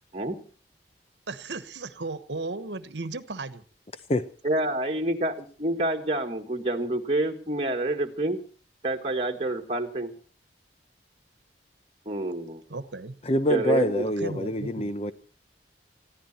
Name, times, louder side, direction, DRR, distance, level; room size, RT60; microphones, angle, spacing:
voice 1, 1.3-3.6 12.7-13.2 14.0-14.9, right 3 dB, 75° right, 1.2 m, -35 dB
voice 2, 4.4-8.4 8.8-10.1 12.0-12.6 13.5-14.1, right 1 dB, 30° right, 1.7 m, -28 dB
voice 3, 13.2-15.1, left 1 dB, 35° left, 0.7 m, -25 dB
21.0 x 15.0 x 4.3 m
head